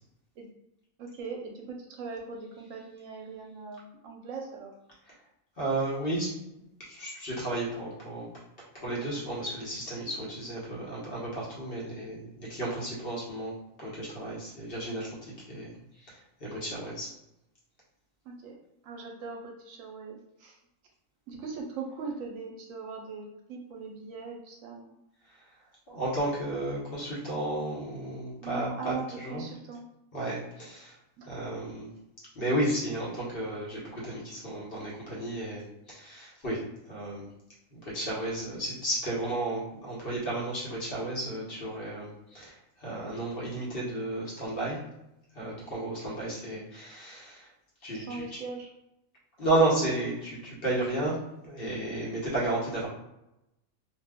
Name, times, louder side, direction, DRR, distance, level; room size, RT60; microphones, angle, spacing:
voice 1, 1.0-4.7 18.2-18.6 18.8-20.6 21.3-24.9 28.4-29.8 30.2-30.4 31.2-31.3 47.9-48.7, right 4 dB, 70° right, 1 dB, 0.9 m, -40 dB
voice 2, 5.6-6.3 6.8-8.3 8.6-13.5 13.8-15.2 15.5-17.1 25.3-25.4 25.9-29.4 30.1-31.0 31.2-31.9 32.3-36.6 36.9-37.3 37.7-44.8 45.3-47.5 47.8-48.2 49.4-52.9, right 1 dB, 45° left, -5 dB, 1.0 m, -33 dB
2.5 x 2.3 x 3.4 m, 0.88 s
omnidirectional pair, 1.5 m